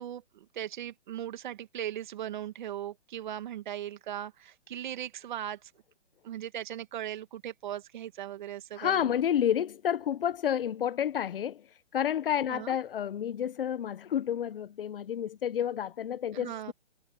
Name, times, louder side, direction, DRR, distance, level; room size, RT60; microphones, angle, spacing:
voice 1, 0.0-5.7 6.2-9.1 12.5-12.8 16.3-16.7, right 11 dB, 45° right, 2.4 m, -38 dB
voice 2, 8.8-11.7 11.9-16.7, left 9 dB, 55° left, 1.0 m, -30 dB
hypercardioid pair, 160°, 34 cm